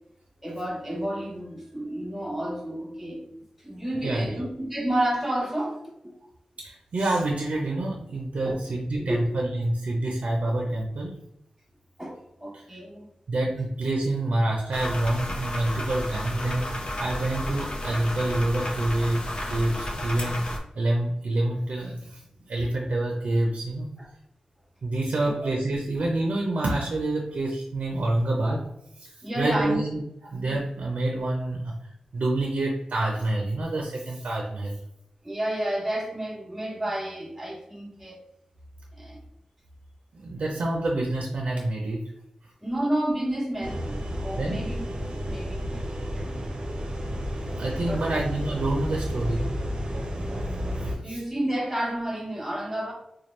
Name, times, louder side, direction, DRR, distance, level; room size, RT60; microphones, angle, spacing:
voice 1, 0.4-3.2 3.6-5.9 8.4-8.7 9.0-9.3 12.0-13.1 24.0-24.1 25.2-25.5 29.2-29.8 35.2-38.2 39.0-39.2 42.6-44.8 45.1-46.3 47.8-48.0 50.8-52.9, right 1 dB, 5° right, -3 dB, 1.0 m, -31 dB
voice 2, 4.0-4.4 6.6-11.1 12.5-12.6 13.3-20.4 20.7-22.2 22.5-23.9 24.8-28.7 29.0-31.8 32.1-34.8 40.2-42.1 44.4-44.6 47.6-49.5 51.1-51.2, right 2 dB, 85° right, 0 dB, 0.6 m, -27 dB
sound 1, 14.7-20.6, left 1 dB, 50° left, 0.7 m, -32 dB
sound 2, 43.6-51.0, equal, 50° right, 0.7 m, -31 dB
4.2 x 2.3 x 3.1 m, 0.79 s
wide cardioid pair, 80°, 2 cm